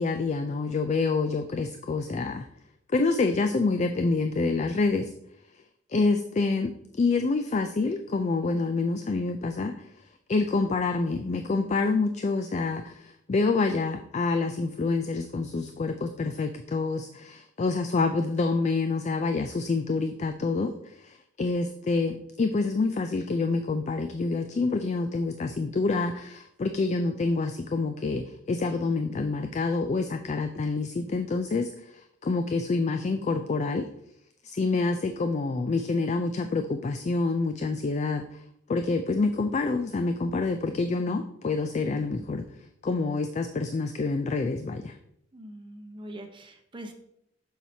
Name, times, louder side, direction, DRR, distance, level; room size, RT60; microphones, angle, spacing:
voice 1, 0.0-2.5 2.9-5.1 5.9-9.9 10.3-33.9 34.4-38.4 38.7-42.5 42.8-45.0, left 3 dB, 35° left, 7 dB, 0.4 m, -27 dB
voice 2, 45.3-46.9, right 1 dB, 25° right, 3 dB, 0.8 m, -43 dB
7.3 x 5.6 x 2.7 m, 0.74 s
head